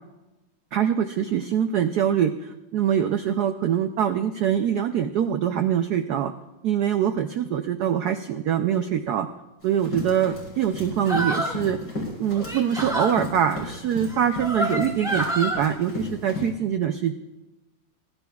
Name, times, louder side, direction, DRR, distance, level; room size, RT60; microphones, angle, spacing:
voice 1, 0.7-6.3 6.6-9.3 9.6-11.8 12.2-17.1, right 9 dB, 85° right, 8 dB, 0.8 m, -24 dB
Run, 9.6-16.5, left 1 dB, 55° left, 4.6 m, -35 dB
sound 1, 11.0-11.6 12.3-13.1 14.1-15.6, right 1 dB, ahead, 1.6 m, -27 dB
20.0 x 12.0 x 2.3 m, 1.0 s
omnidirectional pair, 2.3 m